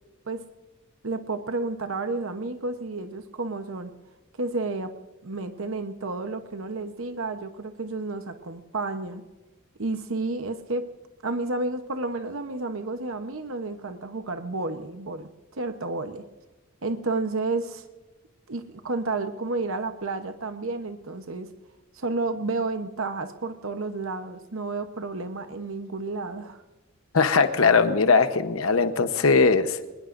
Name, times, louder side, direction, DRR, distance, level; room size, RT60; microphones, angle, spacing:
voice 1, 1.0-3.9 4.4-4.9 5.2-9.2 9.8-10.8 11.2-16.2 16.8-17.8 18.5-21.5 21.9-26.6, right 3 dB, 70° right, 8 dB, 1.0 m, -31 dB
voice 2, 27.1-29.9, left 4 dB, 80° left, 9 dB, 1.0 m, -20 dB
24.5 x 20.5 x 2.6 m, 1.1 s
head